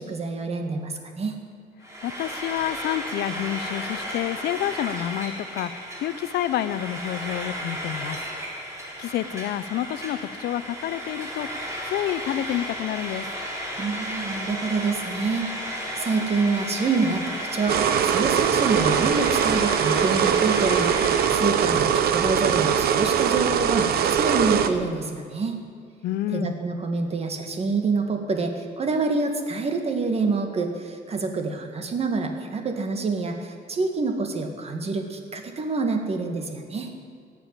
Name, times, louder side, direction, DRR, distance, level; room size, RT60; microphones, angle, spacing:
voice 1, 0.0-1.4 13.8-21.0 21.3-25.6 26.3-36.9, right 3 dB, 40° right, 5 dB, 1.9 m, -27 dB
Frying (food), 1.8-21.5, equal, 20° right, 3.6 m, -34 dB
voice 2, 2.0-8.2 9.0-13.3 26.0-26.6, left 12 dB, 85° left, 15 dB, 0.6 m, -29 dB
sound 1, 17.7-24.7, right 8 dB, 75° right, 0.9 m, -22 dB
17.0 x 7.0 x 9.0 m, 2.2 s
cardioid pair, 120°, 16 cm